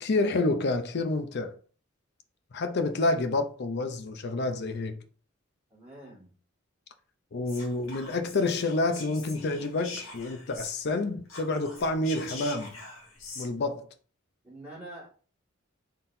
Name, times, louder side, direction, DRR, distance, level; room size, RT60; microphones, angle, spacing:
voice 1, 0.0-1.6 2.5-5.0 7.3-12.8 13.4-13.9, left 2 dB, 55° left, 0.5 m, -28 dB
voice 2, 5.7-6.3 14.4-15.1, right 1 dB, 5° right, 2.0 m, -45 dB
Whispering, 7.4-11.0 11.2-13.5, left 4 dB, 75° left, 1.5 m, -43 dB
4.1 x 3.8 x 2.7 m
head